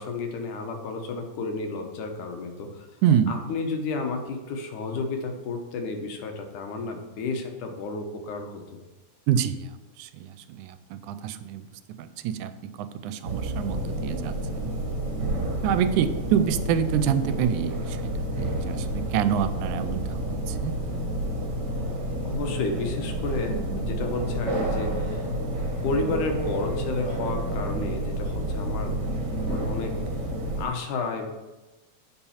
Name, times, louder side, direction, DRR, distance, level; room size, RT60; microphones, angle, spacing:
voice 1, 0.0-2.9 3.3-8.8 22.2-25.2 25.8-28.9 29.5-29.9 30.6-31.3, left 3 dB, 85° left, 4 dB, 2.5 m, -31 dB
voice 2, 3.0-3.4 9.3-11.6 12.0-14.8 15.6-18.1 18.4-20.8, right 9 dB, 85° right, 11 dB, 2.0 m, -27 dB
sound 1, 13.2-30.7, right 1 dB, 40° right, 2.0 m, -29 dB
7.1 x 5.3 x 5.6 m, 1.1 s
omnidirectional pair, 3.4 m